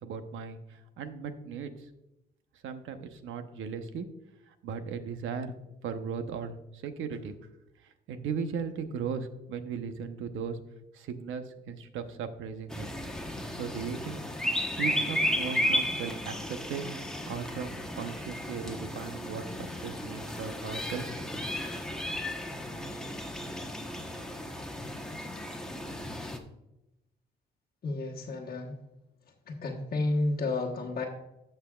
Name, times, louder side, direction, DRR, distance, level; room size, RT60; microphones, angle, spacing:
voice 1, 0.0-1.7 2.6-4.1 4.5-5.6 5.8-7.3 8.1-10.6 10.9-12.9 13.5-14.2 14.8-17.0 17.3-21.5, right 6 dB, 80° right, 8 dB, 0.9 m, -37 dB
sound 1, 12.7-26.4, equal, 5° left, 1.0 m, -34 dB
voice 2, 27.8-28.8 29.5-31.0, left 2 dB, 50° left, -2 dB, 1.2 m, -31 dB
15.5 x 5.8 x 2.4 m, 0.93 s
cardioid pair, 90°, 20 cm